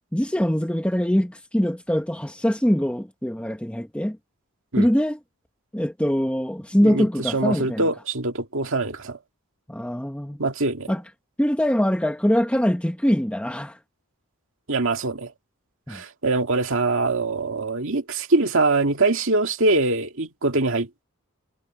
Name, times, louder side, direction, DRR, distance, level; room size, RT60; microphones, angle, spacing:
voice 1, 0.1-4.2 4.8-5.2 5.7-7.8 9.7-10.4 10.9-11.0 11.4-13.8 15.9-16.0, equal, 5° left, 1.3 m, -23 dB
voice 2, 6.8-9.2 10.4-10.9 14.7-15.3 15.9-21.0, right 3 dB, 65° right, 2.3 m, -23 dB
head